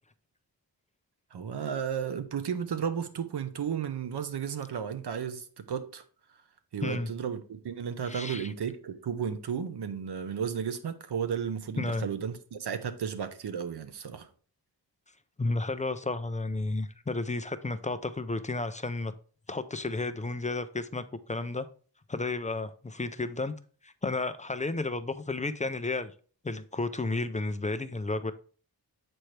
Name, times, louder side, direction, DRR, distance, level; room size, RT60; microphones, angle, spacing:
voice 1, 1.3-6.0 6.7-14.3, right 7 dB, 85° right, 0.8 m, -33 dB
voice 2, 8.1-8.5 11.8-12.1 15.4-19.1 19.5-21.0 21.3-21.7 22.1-23.5 23.8-26.1 26.4-28.3, left 3 dB, 20° left, 0.4 m, -32 dB
7.7 x 4.4 x 3.2 m
wide cardioid pair, 120°, 39 cm